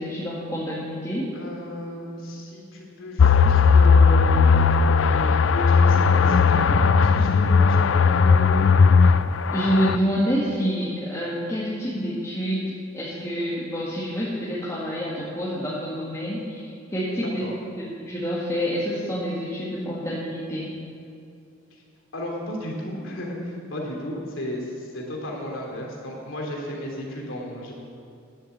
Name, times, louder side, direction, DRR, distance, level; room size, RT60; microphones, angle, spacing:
voice 1, 0.0-1.3 9.5-20.7, equal, 15° left, -8 dB, 1.9 m, -27 dB
voice 2, 1.3-4.3 5.1-8.8 17.2-17.5 22.1-27.7, left 1 dB, 90° left, -1 dB, 2.9 m, -34 dB
sound 1, 3.2-10.0, left 5 dB, 70° left, 0.4 m, -17 dB
11.5 x 7.7 x 8.0 m, 2.6 s
head